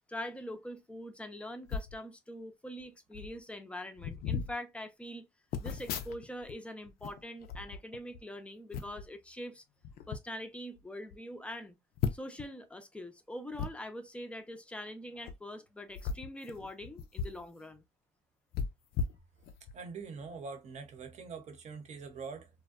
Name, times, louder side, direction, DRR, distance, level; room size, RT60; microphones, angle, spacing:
voice 1, 0.1-5.3 5.6-9.6 10.1-11.8 12.1-17.8, left 1 dB, 5° left, 0.5 m, -43 dB
sound 1, 1.7-2.0 2.8-2.9 3.1-3.4 4.0-4.5 5.5-6.6 6.8-8.2 8.7-9.1 9.8-10.2 10.8-10.9 11.1-11.2 12.0-12.5 13.5-13.7 15.2-15.3 15.9-17.4 17.7-17.8 18.5-19.8 20.2-20.4, left 6 dB, 65° left, 0.5 m, -37 dB
voice 2, 19.7-22.5, right 5 dB, 45° right, 0.8 m, -44 dB
2.5 x 2.1 x 2.3 m
cardioid pair, 110°, 17 cm